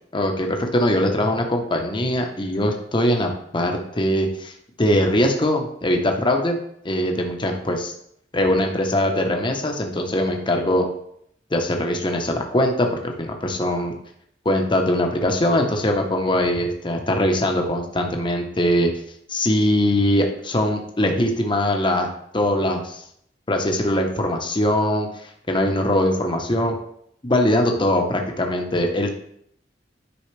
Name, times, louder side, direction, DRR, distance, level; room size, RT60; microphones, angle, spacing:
voice 1, 0.1-4.5 4.8-6.6 6.8-7.9 8.3-10.9 11.5-13.9 14.4-18.9 19.3-23.0 23.5-26.8 27.2-29.1, left 1 dB, 25° left, 3 dB, 1.0 m, -21 dB
10.0 x 5.3 x 3.3 m, 0.71 s
head